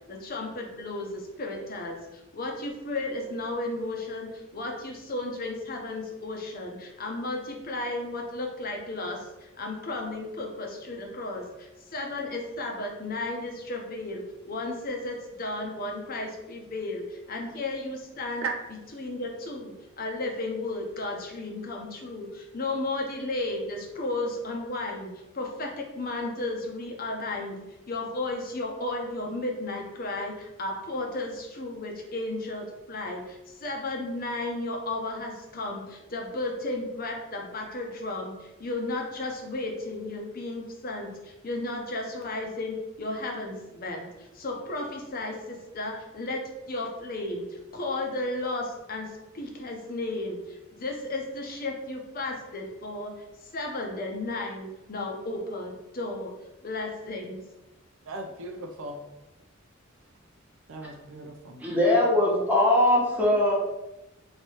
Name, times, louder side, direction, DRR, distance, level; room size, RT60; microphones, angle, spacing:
voice 1, 0.1-18.4 19.0-27.6 27.9-49.1 49.3-53.1 53.4-56.3 56.6-57.4, left 2 dB, 45° left, 1 dB, 0.7 m, -34 dB
voice 2, 58.0-59.0 60.7-61.6, right 3 dB, 75° right, 3 dB, 0.5 m, -36 dB
voice 3, 61.6-63.5, left 1 dB, 10° right, -5 dB, 1.0 m, -21 dB
3.2 x 2.9 x 4.3 m, 0.97 s
head